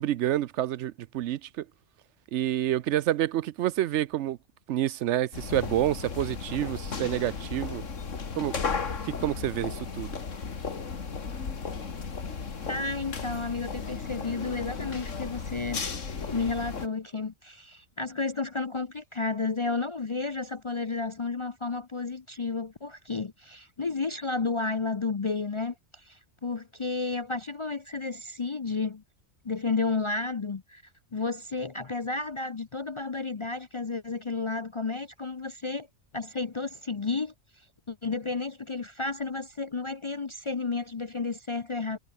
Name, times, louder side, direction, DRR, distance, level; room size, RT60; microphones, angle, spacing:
voice 1, 0.0-1.6 2.3-4.4 4.7-7.8 8.4-8.6 9.0-10.2, right 13 dB, 70° right, 0.8 m, -28 dB
sound 1, 5.3-16.9, left 5 dB, 85° left, 2.3 m, -35 dB
voice 2, 12.7-15.8 16.3-29.0 29.4-30.8 31.1-35.9 36.1-37.3 37.9-42.0, left 4 dB, 35° left, 0.5 m, -32 dB
omnidirectional pair, 1.3 m